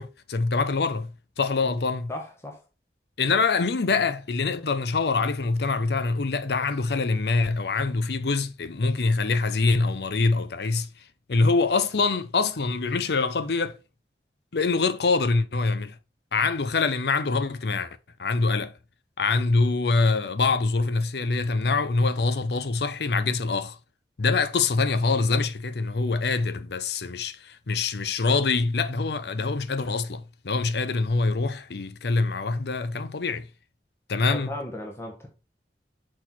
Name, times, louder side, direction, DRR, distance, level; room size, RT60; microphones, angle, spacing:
voice 1, 0.0-2.1 3.2-13.8 14.5-16.0 16.3-18.7 19.2-23.8 24.2-33.5 34.1-34.5, left 4 dB, 65° left, 0.7 m, -25 dB
voice 2, 2.1-2.6 34.2-35.3, left 1 dB, 15° left, 1.1 m, -36 dB
6.3 x 4.1 x 4.4 m
head